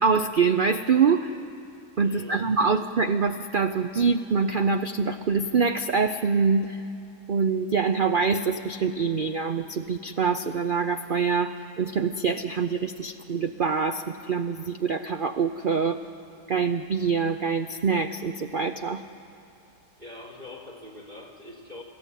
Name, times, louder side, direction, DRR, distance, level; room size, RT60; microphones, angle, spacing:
voice 1, 0.0-1.3 2.0-6.8 7.3-16.0 16.5-19.0, right 5 dB, 85° right, 8 dB, 0.4 m, -25 dB
voice 2, 2.0-2.7 20.0-21.8, left 2 dB, 30° right, 2 dB, 3.6 m, -43 dB
28.0 x 16.0 x 9.1 m, 2.7 s
omnidirectional pair, 1.8 m